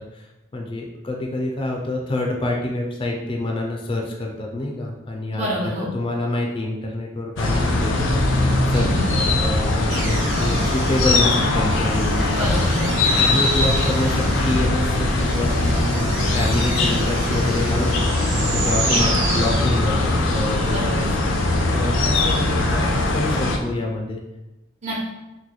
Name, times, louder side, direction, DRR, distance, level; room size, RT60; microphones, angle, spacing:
voice 1, 0.5-12.3 13.2-21.1 21.7-24.2, left 1 dB, 25° left, 0 dB, 0.4 m, -27 dB
voice 2, 5.3-5.9 8.7-9.1 12.3-13.0 18.9-19.1 20.7-20.9 24.8-25.0, equal, 35° right, -6 dB, 0.9 m, -27 dB
sound 1, 7.4-23.6, left 2 dB, 85° left, 0.5 m, -21 dB
sound 2, 9.9-20.2, right 4 dB, 75° right, 0.5 m, -32 dB
3.0 x 2.2 x 3.8 m, 1.0 s
head